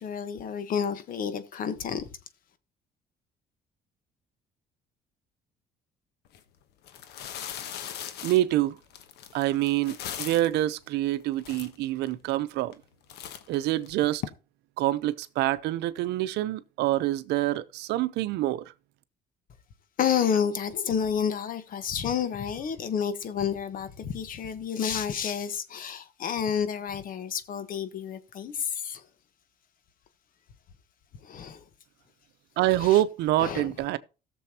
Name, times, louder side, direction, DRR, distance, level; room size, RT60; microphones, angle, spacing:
voice 1, 0.0-2.0 20.0-29.0 31.2-31.6 32.8-33.0 33.4-33.7, left 7 dB, 55° left, 1.3 m, -30 dB
sound 1, 6.3-6.4 6.8-10.6 11.1-11.2 11.4-12.1 12.6-12.8 13.1-14.3, left 10 dB, 80° left, 1.1 m, -39 dB
voice 2, 8.2-8.8 9.3-12.7 13.5-14.2 14.8-18.7 32.6-34.0, right 15 dB, 85° right, 0.7 m, -26 dB
17.0 x 6.9 x 2.9 m
cardioid pair, 110°, 17 cm